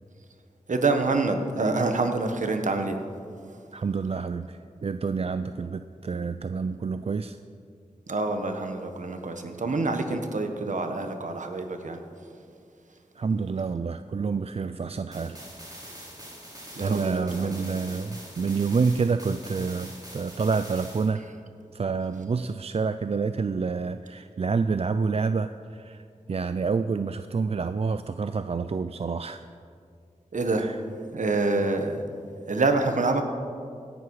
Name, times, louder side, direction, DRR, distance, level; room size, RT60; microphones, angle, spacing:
voice 1, 0.7-3.0 8.1-12.0 16.8-17.6 30.3-30.7 31.1-32.0 32.5-33.2, right 3 dB, 70° right, 6 dB, 1.3 m, -26 dB
voice 2, 3.7-7.4 13.2-15.4 16.8-21.2 21.7-29.4 30.6-30.8, right 5 dB, 50° right, 11 dB, 0.4 m, -28 dB
sound 1, 15.1-21.1, right 1 dB, 30° right, 4.1 m, -44 dB
17.0 x 11.0 x 4.8 m, 2.3 s
wide cardioid pair, 60°, 13 cm